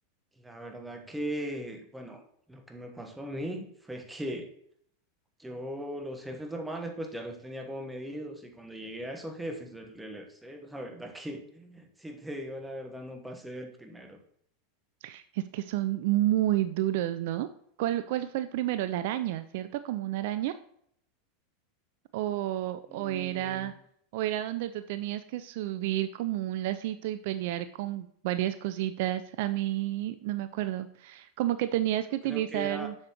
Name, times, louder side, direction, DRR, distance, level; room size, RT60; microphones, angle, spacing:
voice 1, 0.4-2.2 2.5-4.5 5.4-14.2 22.9-23.7 32.2-32.9, equal, 5° right, 4 dB, 1.2 m, -39 dB
voice 2, 15.0-17.5 17.8-20.5 22.1-23.7 24.1-32.9, right 14 dB, 55° right, 12 dB, 0.3 m, -30 dB
7.1 x 6.7 x 3.0 m, 0.68 s
figure-of-eight pair, 85°, 0 cm